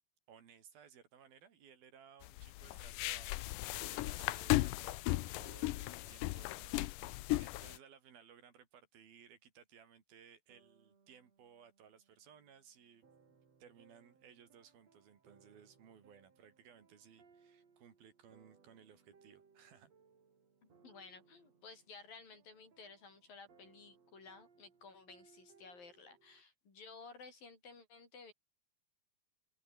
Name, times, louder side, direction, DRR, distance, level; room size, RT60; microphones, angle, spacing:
voice 1, 0.3-19.9, right 8 dB, 70° right, 4.6 m, -61 dB
sound 1, 2.2-7.8, left 18 dB, 80° left, 1.9 m, -36 dB
sound 2, 10.5-26.4, right 5 dB, 40° right, 4.6 m, -69 dB
voice 2, 20.6-28.3, left 4 dB, 60° left, 8.0 m, -55 dB
open air
omnidirectional pair, 4.5 m